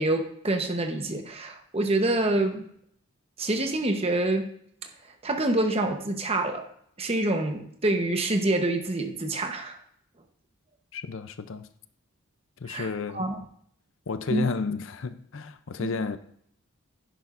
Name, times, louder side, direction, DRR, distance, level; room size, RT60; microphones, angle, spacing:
voice 1, 0.0-2.7 3.4-4.5 5.2-6.7 7.0-9.8 12.7-13.4 14.3-14.5 15.8-15.9, right 2 dB, 30° right, 5 dB, 1.0 m, -26 dB
voice 2, 10.9-11.7 12.6-13.2 14.1-16.2, left 4 dB, 60° left, 12 dB, 0.5 m, -32 dB
11.0 x 10.0 x 2.5 m, 0.68 s
head